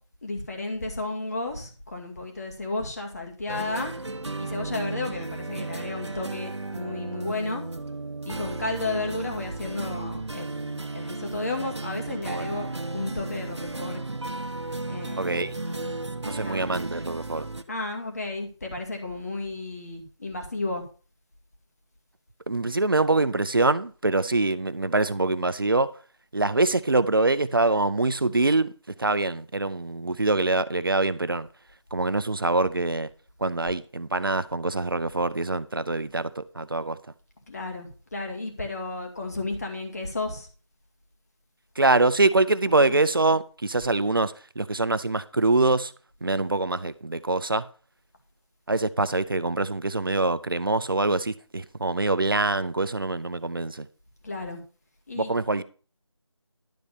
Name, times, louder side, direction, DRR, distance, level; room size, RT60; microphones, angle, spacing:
voice 1, 0.2-3.9 4.4-7.6 8.3-12.7 12.9-14.0 14.8-16.7 17.7-20.8 37.5-40.5 42.8-43.0 54.2-54.6 55.1-55.3, left 2 dB, 35° left, 2.3 m, -33 dB
sound 1, 3.5-17.6, right 2 dB, 70° right, 1.1 m, -34 dB
voice 2, 15.2-15.5 16.2-17.5 22.5-25.9 26.3-28.7 29.0-31.5 31.9-33.1 33.4-37.0 41.8-45.9 46.2-47.7 48.7-53.9 55.2-55.6, right 2 dB, 50° right, 0.6 m, -24 dB
12.0 x 4.2 x 7.0 m
figure-of-eight pair, 170°, 15 cm